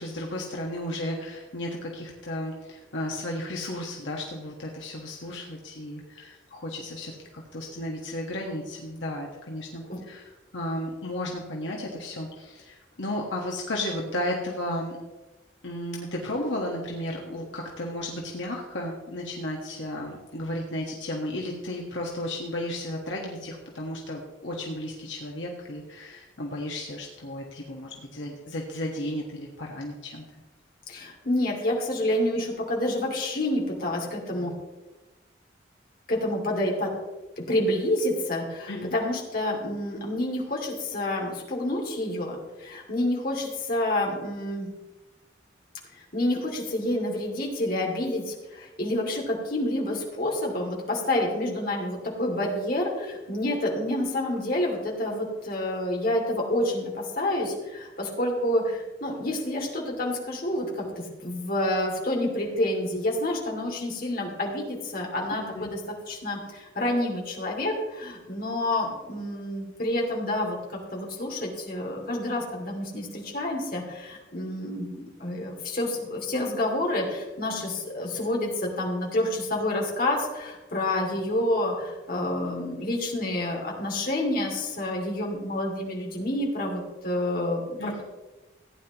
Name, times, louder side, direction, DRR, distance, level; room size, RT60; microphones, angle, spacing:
voice 1, 0.0-14.9 15.6-30.2 38.7-38.9 65.3-65.7 87.8-88.0, left 1 dB, 75° left, -1 dB, 1.6 m, -34 dB
voice 2, 30.9-34.5 36.1-36.9 37.4-44.7 46.1-65.8 66.1-70.6 70.9-88.0, left 1 dB, 50° left, -1 dB, 2.6 m, -28 dB
16.0 x 9.7 x 3.0 m, 1.1 s
head